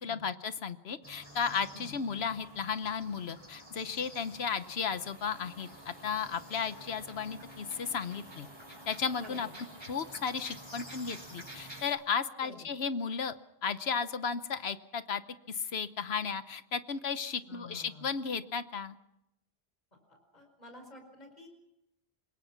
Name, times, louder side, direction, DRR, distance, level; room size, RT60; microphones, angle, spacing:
voice 1, 0.0-8.5 8.9-9.5 9.9-13.3 13.6-15.2 15.5-18.9, left 6 dB, 80° left, 12 dB, 1.2 m, -34 dB
sound 1, 1.0-11.8, right 1 dB, 25° right, 6.3 m, -50 dB
Hiss, 4.1-11.9, right 1 dB, 45° right, 6.3 m, -58 dB
voice 2, 9.2-9.5 12.4-12.7 17.5-18.1 20.1-21.5, left 2 dB, 40° left, 4 dB, 5.2 m, -50 dB
26.5 x 21.5 x 5.9 m, 0.85 s
omnidirectional pair, 1.0 m